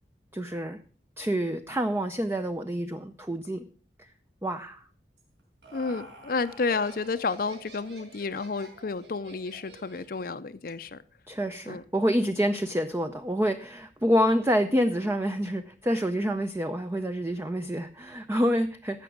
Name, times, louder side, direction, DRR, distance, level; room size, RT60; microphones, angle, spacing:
voice 1, 0.3-0.8 1.2-3.6 4.4-4.8 11.3-19.0, equal, 15° right, 8 dB, 0.5 m, -27 dB
Laughter, 5.2-10.3, right 2 dB, 70° right, 5.0 m, -49 dB
voice 2, 5.7-11.0 11.7-11.8, left 4 dB, 55° left, 11 dB, 0.5 m, -31 dB
15.5 x 6.0 x 6.0 m, 0.43 s
head